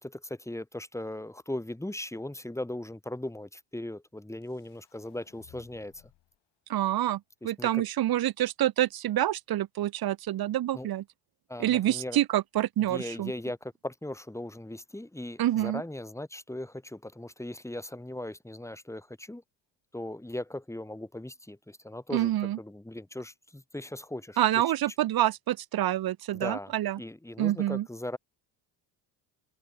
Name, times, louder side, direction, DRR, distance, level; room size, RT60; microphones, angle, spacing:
voice 1, 0.0-6.0 7.4-7.8 10.7-10.9 11.5-12.2 12.8-19.4 19.9-24.6 26.3-28.2, left 1 dB, 5° left, 3.5 m, -38 dB
sound 1, 4.4-6.4, left 16 dB, 75° left, 5.9 m, -60 dB
voice 2, 6.7-11.0 11.6-13.3 15.4-15.8 22.1-22.6 24.4-27.0 27.4-27.9, right 13 dB, 55° right, 1.0 m, -27 dB
supercardioid pair, 75°, 45 cm